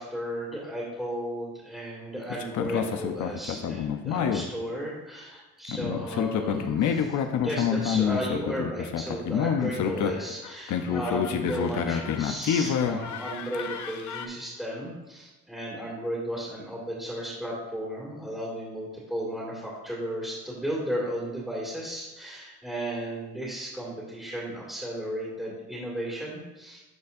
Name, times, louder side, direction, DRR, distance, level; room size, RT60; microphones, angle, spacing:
voice 1, 0.0-26.8, right 1 dB, ahead, -7 dB, 2.2 m, -34 dB
sound 1, 2.3-4.4 5.6-14.3, left 8 dB, 75° left, 0.7 m, -28 dB
12.0 x 4.2 x 2.6 m, 1.1 s
cardioid pair, 90°, 30 cm